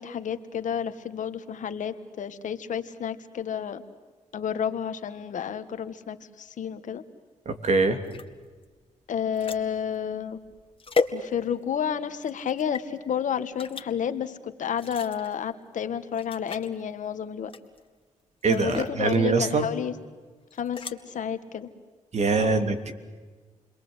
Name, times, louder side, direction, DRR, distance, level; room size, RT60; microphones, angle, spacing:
voice 1, 0.0-3.8 4.3-7.0 9.1-10.4 11.1-17.5 18.5-19.9 20.5-21.7 22.3-22.7, left 8 dB, 70° left, 10 dB, 1.7 m, -31 dB
voice 2, 7.4-8.0 18.4-19.6 22.1-22.9, right 4 dB, 55° right, 6 dB, 3.2 m, -23 dB
sound 1, 8.0-11.8 12.2-12.9 13.6-13.9 14.7-15.4 15.8-15.9 16.1-16.7 17.5-17.9 18.4-19.0 20.5-21.0, left 4 dB, 40° left, 2.2 m, -34 dB
30.0 x 22.0 x 8.1 m, 1.4 s
supercardioid pair, 60°, 14 cm